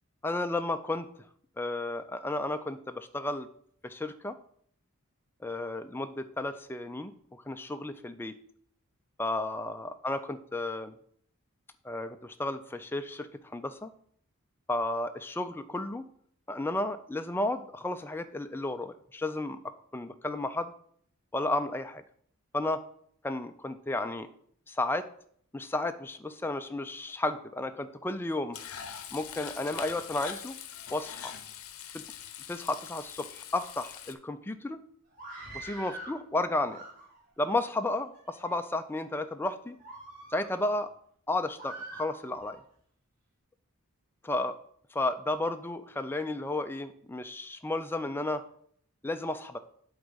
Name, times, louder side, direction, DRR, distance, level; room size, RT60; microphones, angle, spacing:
voice 1, 0.2-1.1 1.6-3.5 3.8-4.4 5.4-8.4 9.2-10.9 11.8-13.9 14.7-16.0 16.5-19.6 19.9-20.7 21.3-22.0 22.5-22.8 23.2-24.3 24.7-25.1 25.5-28.6 29.1-30.5 30.9-31.3 31.9-32.0 32.5-34.8 35.5-36.8 37.4-39.8 40.3-40.9 41.3-42.6 44.3-44.5 44.9-48.4 49.0-49.6, left 2 dB, 10° left, 8 dB, 0.4 m, -33 dB
Frying (food), 28.5-34.1, left 9 dB, 75° left, 0.7 m, -43 dB
Screaming, 35.1-36.2 36.6-37.3 38.0-38.6 39.1-39.3 39.8-40.8 41.6-42.6, right 2 dB, 35° right, 3.1 m, -45 dB
7.9 x 4.0 x 5.1 m, 0.62 s
head